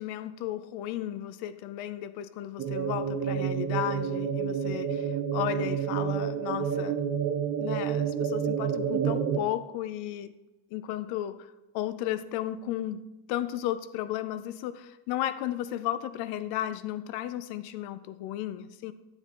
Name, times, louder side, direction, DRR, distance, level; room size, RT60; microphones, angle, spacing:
voice 1, 0.0-7.0 7.6-10.4 10.7-18.9, left 12 dB, 55° left, 0.6 m, -34 dB
sound 1, 2.6-9.4, right 7 dB, 25° right, 0.5 m, -29 dB
9.6 x 9.4 x 3.0 m
cardioid pair, 150°, 48 cm